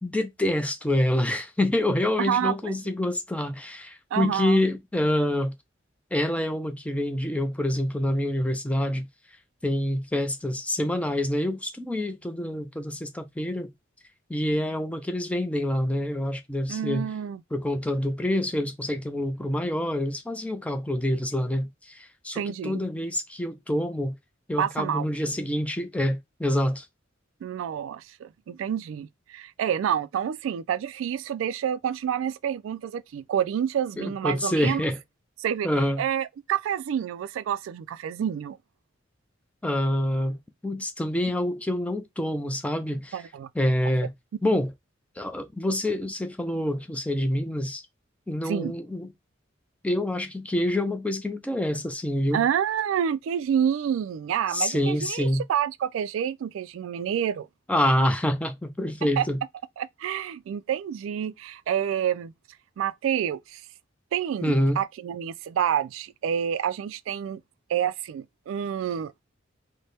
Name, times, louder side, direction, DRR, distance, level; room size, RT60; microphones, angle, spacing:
voice 1, 0.0-5.5 6.1-9.1 9.6-13.7 14.3-17.1 17.5-24.1 24.5-26.9 34.0-35.0 35.6-36.0 39.6-43.2 43.6-44.1 44.4-44.7 45.2-47.8 48.3-49.1 49.8-52.4 54.5-55.4 57.7-59.4 64.4-64.8, left 1 dB, 5° left, 0.5 m, -26 dB
voice 2, 2.2-2.7 4.1-4.6 16.7-17.4 22.3-22.8 24.6-25.1 27.4-34.8 35.4-35.7 36.0-38.6 43.1-43.5 48.4-48.7 52.3-57.5 59.2-59.3 59.8-62.3 62.8-63.6 64.1-67.4 67.7-69.2, right 9 dB, 85° right, 0.3 m, -28 dB
4.1 x 2.1 x 3.3 m
head